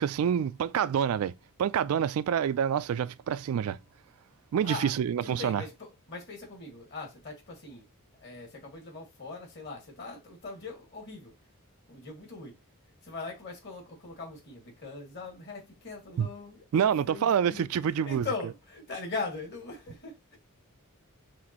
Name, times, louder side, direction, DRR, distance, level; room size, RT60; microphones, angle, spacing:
voice 1, 0.0-1.3 1.6-3.8 4.5-5.6 16.2-16.3 16.7-18.3, right 8 dB, 75° right, 0.3 m, -27 dB
voice 2, 4.6-7.8 8.2-11.3 11.9-12.6 13.0-17.6 17.9-20.4, left 3 dB, 50° left, 2.1 m, -40 dB
6.0 x 2.6 x 2.9 m
head